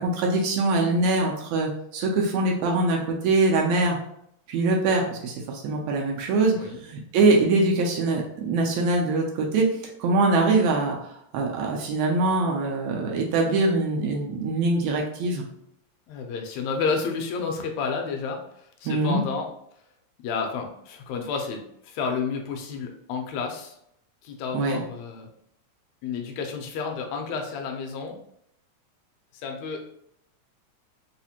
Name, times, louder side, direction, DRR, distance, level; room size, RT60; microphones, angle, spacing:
voice 1, 0.0-4.0 4.5-9.7 10.0-11.0 11.3-15.5 18.9-19.2 24.5-24.8, right 2 dB, 80° right, 0 dB, 1.6 m, -23 dB
voice 2, 16.1-19.5 20.2-23.8 24.2-25.3 26.0-28.2 29.3-29.8, left 5 dB, 75° left, 3 dB, 1.7 m, -31 dB
4.8 x 2.1 x 2.8 m, 0.74 s
omnidirectional pair, 3.5 m